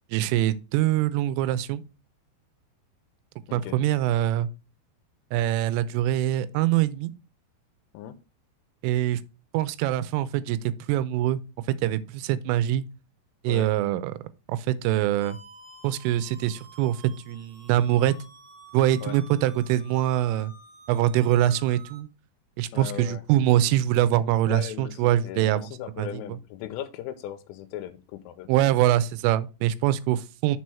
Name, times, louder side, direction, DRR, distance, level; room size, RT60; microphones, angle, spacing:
voice 1, 0.1-1.8 3.5-4.5 5.3-7.1 8.8-9.2 9.5-10.6 10.9-11.4 11.8-12.8 13.4-14.2 14.5-15.4 15.8-17.0 17.3-18.2 18.7-20.5 20.9-22.1 22.6-25.6 26.0-26.1 28.5-30.6, right 13 dB, 85° right, 3.1 m, -24 dB
sound 1, 15.2-22.0, right 3 dB, 55° right, 1.7 m, -50 dB
voice 2, 22.7-23.2 24.5-28.5, left 11 dB, 90° left, 3.1 m, -37 dB
6.7 x 4.7 x 4.2 m
omnidirectional pair, 5.7 m